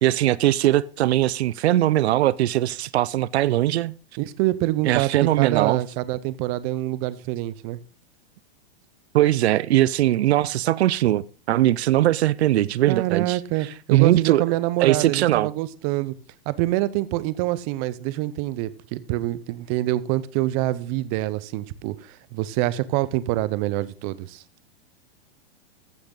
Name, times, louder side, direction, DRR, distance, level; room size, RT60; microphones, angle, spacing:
voice 1, 0.0-3.9 4.8-5.8 9.1-13.4 13.9-14.4 14.8-15.5, right 14 dB, 85° right, 0.5 m, -20 dB
voice 2, 4.2-5.1 5.4-7.8 12.9-16.1 16.5-24.4, right 16 dB, 35° right, 0.7 m, -26 dB
14.5 x 6.5 x 3.8 m
hypercardioid pair, 145°, 32 cm